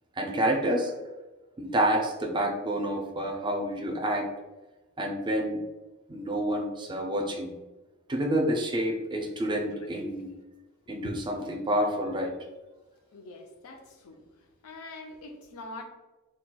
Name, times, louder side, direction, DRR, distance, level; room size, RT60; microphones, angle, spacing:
voice 1, 0.2-0.9 1.6-4.2 5.0-5.6 6.1-7.5 8.1-10.3 10.9-12.3, right 1 dB, 20° right, 2 dB, 0.4 m, -28 dB
voice 2, 13.1-14.2 14.6-15.8, left 2 dB, 80° left, 4 dB, 0.5 m, -43 dB
4.1 x 2.2 x 2.2 m, 1.1 s
head